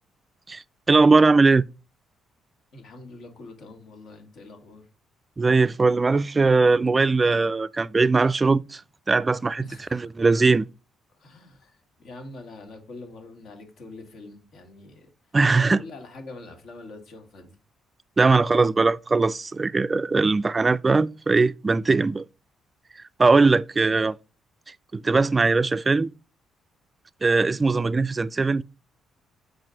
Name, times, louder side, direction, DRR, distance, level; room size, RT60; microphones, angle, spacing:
voice 1, 0.5-1.6 5.4-8.8 9.1-9.6 9.9-10.7 15.3-15.8 18.2-22.2 23.2-24.1 24.9-26.1 27.2-28.6, right 3 dB, 25° right, 0.3 m, -20 dB
voice 2, 2.7-4.9 9.6-10.1 11.2-15.1 15.5-17.6 23.8-24.0, left 2 dB, 70° left, 1.9 m, -44 dB
6.3 x 4.5 x 3.8 m
cardioid pair, 90°, 0 cm